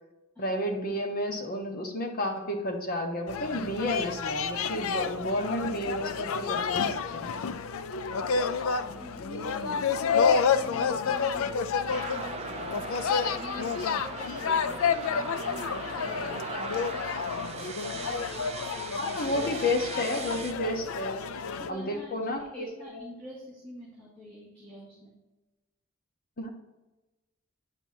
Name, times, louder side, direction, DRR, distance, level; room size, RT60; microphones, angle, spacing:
voice 1, 0.4-7.3 12.5-12.6 19.0-21.2 21.7-23.0 26.4-26.5, left 1 dB, 45° left, 3 dB, 1.1 m, -31 dB
sound 1, 3.3-21.7, left 6 dB, 75° left, 0.4 m, -30 dB
voice 2, 8.3-12.8 13.1-17.2 17.5-19.2 21.1-21.3 21.6-25.1, equal, 5° left, -9 dB, 2.1 m, -47 dB
sound 2, 11.9-20.5, right 6 dB, 30° right, 0.4 m, -40 dB
9.0 x 6.1 x 2.8 m, 1.1 s
head